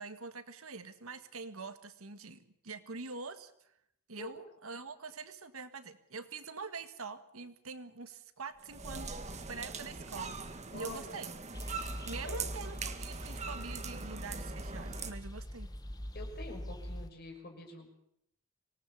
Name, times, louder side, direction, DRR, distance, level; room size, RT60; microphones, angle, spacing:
voice 1, 0.0-3.5 4.1-9.2 9.5-10.4 10.7-11.3 12.1-15.7, right 4 dB, 75° right, 10 dB, 1.8 m, -45 dB
sound 1, 8.6-15.1, right 5 dB, 30° right, 1.6 m, -42 dB
voice 2, 10.7-11.2 12.2-12.5 16.1-17.9, left 2 dB, 45° left, 3 dB, 5.8 m, -46 dB
sound 2, 11.5-17.1, equal, 20° left, 1.2 m, -42 dB
25.5 x 19.0 x 7.3 m, 0.74 s
head